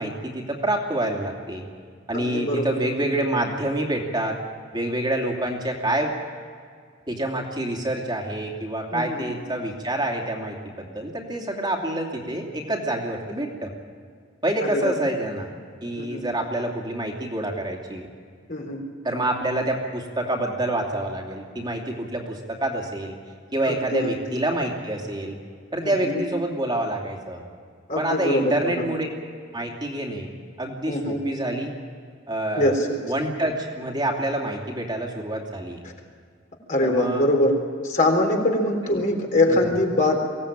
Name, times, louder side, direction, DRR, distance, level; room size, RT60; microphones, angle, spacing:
voice 1, 0.0-1.6 2.1-4.4 4.7-6.1 7.1-13.7 14.4-15.5 15.8-18.1 19.0-23.1 23.5-25.4 25.7-27.4 28.0-29.1 29.5-31.7 32.3-32.8 33.0-35.8 36.8-37.3 39.5-39.6, right 1 dB, 25° right, 0 dB, 2.7 m, -27 dB
voice 2, 2.1-2.7 8.9-9.2 14.6-14.9 15.9-16.2 18.5-18.8 23.7-24.1 25.8-26.2 27.9-28.8 30.9-31.2 32.6-33.0 36.7-37.6 37.8-40.2, left 1 dB, 45° left, 1 dB, 3.7 m, -23 dB
24.0 x 17.5 x 8.8 m, 2.1 s
head